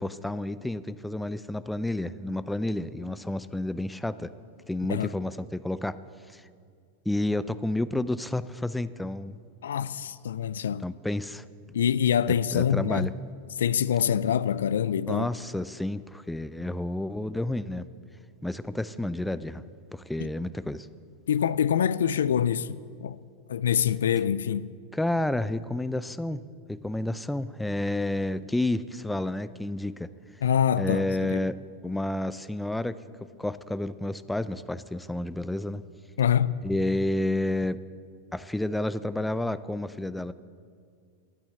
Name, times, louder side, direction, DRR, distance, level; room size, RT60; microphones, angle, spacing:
voice 1, 0.0-4.3 4.7-6.0 6.3-6.4 7.1-9.4 10.8-11.5 12.5-13.1 15.1-17.9 18.4-19.6 19.9-20.9 24.9-26.4 26.7-30.1 30.8-31.6 31.8-33.0 33.4-35.8 36.6-37.8 38.3-40.3, left 1 dB, 5° left, 0.4 m, -30 dB
voice 2, 9.6-10.8 11.7-13.1 13.6-15.3 20.2-20.3 21.3-23.2 23.5-24.7 30.4-31.4 36.2-36.5, left 9 dB, 80° left, 0.3 m, -25 dB
10.0 x 9.0 x 6.9 m
hypercardioid pair, 100°, 0 cm